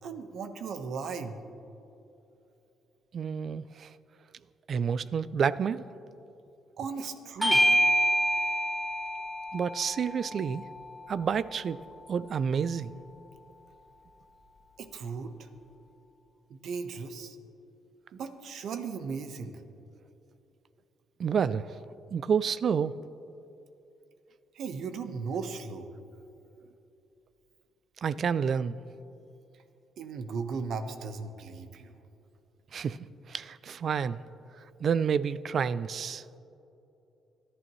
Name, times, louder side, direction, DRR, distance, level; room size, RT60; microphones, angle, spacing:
voice 1, 0.0-1.4 6.8-7.6 14.8-15.5 16.5-17.4 18.1-19.5 24.5-25.9 30.0-31.9, right 5 dB, 70° right, 1.1 m, -36 dB
voice 2, 3.1-3.9 4.7-5.8 9.5-10.7 11.1-13.0 21.2-21.7 22.1-22.9 28.0-28.8 32.7-34.2 34.8-36.2, right 7 dB, 55° right, 0.4 m, -29 dB
Bell / Doorbell, 7.4-12.2, equal, 10° right, 1.5 m, -28 dB
24.5 x 11.5 x 3.2 m
cardioid pair, 90°, 0 cm